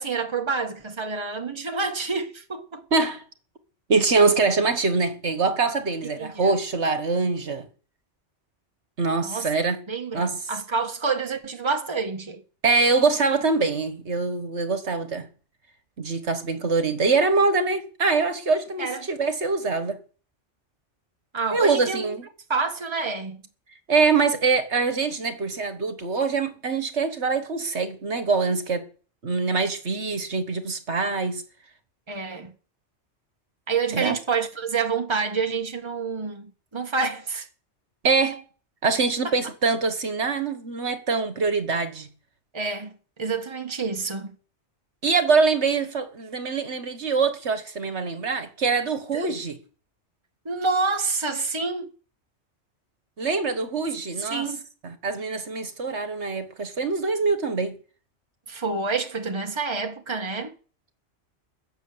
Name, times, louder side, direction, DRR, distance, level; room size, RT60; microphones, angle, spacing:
voice 1, 0.0-2.8 6.2-6.5 9.2-9.5 9.9-12.4 18.8-19.1 21.3-22.1 22.5-23.4 32.1-32.5 33.7-37.5 39.2-39.3 42.5-44.4 49.1-49.4 50.4-51.9 54.2-54.7 58.5-60.5, right 4 dB, 25° right, 1.5 m, -28 dB
voice 2, 2.9-3.2 3.9-7.7 9.0-9.8 10.1-10.3 12.6-15.3 16.0-20.0 21.5-22.3 23.9-28.8 29.2-31.4 33.9-34.1 38.0-38.4 38.8-42.1 45.0-49.6 53.2-54.4 54.8-57.8, right 4 dB, 70° right, 1.8 m, -24 dB
15.0 x 7.4 x 9.6 m
omnidirectional pair, 1.2 m